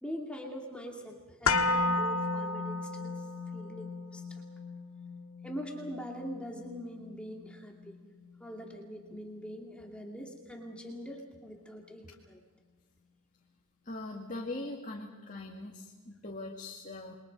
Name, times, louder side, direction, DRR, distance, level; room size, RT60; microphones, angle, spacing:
voice 1, 0.0-3.3 3.5-4.4 5.4-7.9 8.4-12.4, equal, 5° left, 0 dB, 2.4 m, -43 dB
sound 1, 1.5-9.5 9.8-9.9, left 3 dB, 70° left, 1.7 m, -34 dB
voice 2, 13.8-17.2, left 2 dB, 35° left, -1 dB, 2.1 m, -41 dB
28.5 x 22.5 x 5.4 m, 1.4 s
head